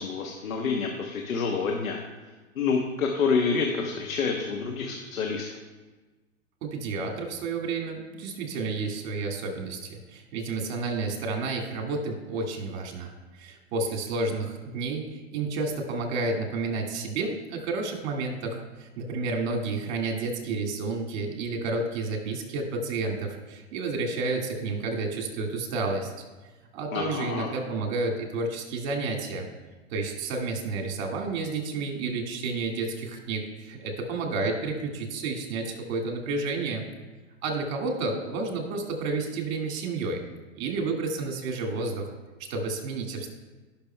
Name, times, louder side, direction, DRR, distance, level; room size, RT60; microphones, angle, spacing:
voice 1, 0.0-2.0 2.6-5.5 26.9-27.5, left 5 dB, 80° left, 2 dB, 1.1 m, -28 dB
voice 2, 6.6-26.1 26.7-29.5 29.9-36.9 37.4-40.2 40.5-42.1 42.4-43.3, right 3 dB, 50° right, 2 dB, 1.9 m, -31 dB
16.0 x 6.0 x 2.2 m, 1.2 s
hypercardioid pair, 115°, 41 cm